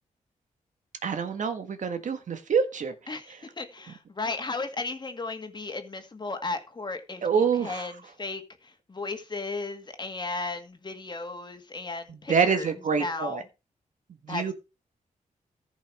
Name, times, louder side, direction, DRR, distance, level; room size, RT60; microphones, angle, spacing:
voice 1, 1.0-3.2 7.2-7.9 12.1-13.4 14.2-14.5, right 6 dB, 65° right, 1.6 m, -26 dB
voice 2, 3.1-7.9 8.2-13.4 14.3-14.5, left 3 dB, 35° left, 2.0 m, -35 dB
14.5 x 5.6 x 4.8 m
cardioid pair, 95°, 14 cm